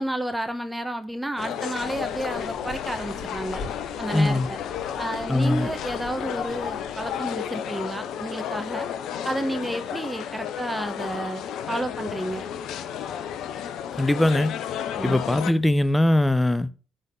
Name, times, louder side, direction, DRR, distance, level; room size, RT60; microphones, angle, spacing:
voice 1, 0.0-3.6 4.0-4.6 5.0-8.9 9.2-11.4 11.7-12.4 15.0-15.2, right 1 dB, 10° right, 1.5 m, -31 dB
sound 1, 1.4-15.5, left 9 dB, 65° left, 0.8 m, -32 dB
sound 2, 1.8-7.5, left 3 dB, 45° left, 4.8 m, -43 dB
voice 2, 4.1-4.5 5.3-5.7 14.0-14.6 15.0-16.7, left 1 dB, 10° left, 0.8 m, -21 dB
10.5 x 4.2 x 7.1 m
hypercardioid pair, 50°, 0 cm